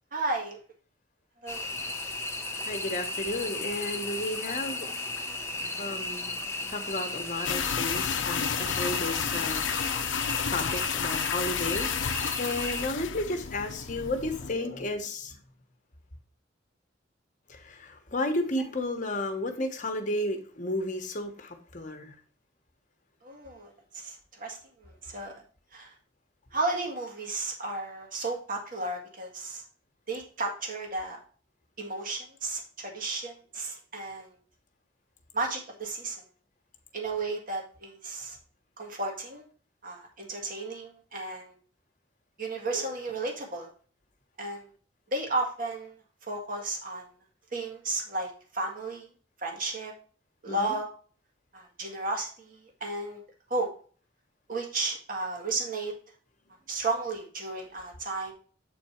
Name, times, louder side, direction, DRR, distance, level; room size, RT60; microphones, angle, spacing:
voice 1, 0.1-0.6 1.4-1.7 4.9-5.0 23.2-25.3 25.7-25.9 26.5-29.6 30.1-31.2 31.8-34.4 35.3-36.3 36.9-38.4 38.8-39.5 39.8-41.5 42.4-43.7 44.4-44.7 45.1-46.0 46.2-47.1 47.5-49.1 49.4-49.9 50.4-50.9 51.5-53.2 53.5-53.7 54.5-55.9 56.7-58.3, right 2 dB, 45° right, 1 dB, 1.8 m, -33 dB
sound 1, 1.5-12.9, left 2 dB, 15° left, 0.8 m, -35 dB
voice 2, 2.7-4.9 5.8-6.3 6.7-9.6 10.5-11.9 12.4-15.3 17.5-22.1 50.5-50.7, left 1 dB, 40° left, 5 dB, 1.2 m, -33 dB
sound 2, 7.4-14.5, left 7 dB, 85° left, 0.6 m, -31 dB
8.0 x 4.4 x 4.3 m, 0.43 s
head